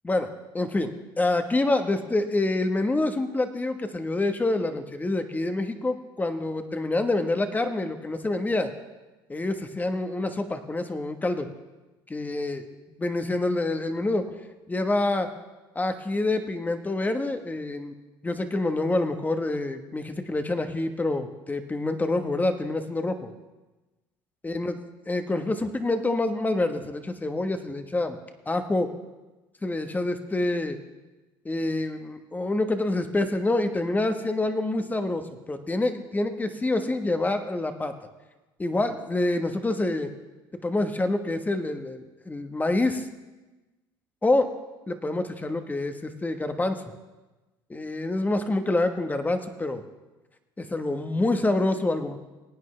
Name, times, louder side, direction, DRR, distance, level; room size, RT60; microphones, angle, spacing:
voice 1, 0.5-8.7 9.3-11.5 12.1-14.3 14.7-15.3 15.7-17.9 18.2-23.3 24.4-24.7 25.1-28.2 28.5-28.9 29.6-30.8 31.4-35.2 35.5-37.9 38.6-40.1 40.6-43.0 44.2-44.5 44.9-46.8 47.7-49.8 50.6-52.2, left 2 dB, 15° left, 7 dB, 1.2 m, -27 dB
22.0 x 9.2 x 3.3 m, 1.1 s
supercardioid pair, 85°, 10 cm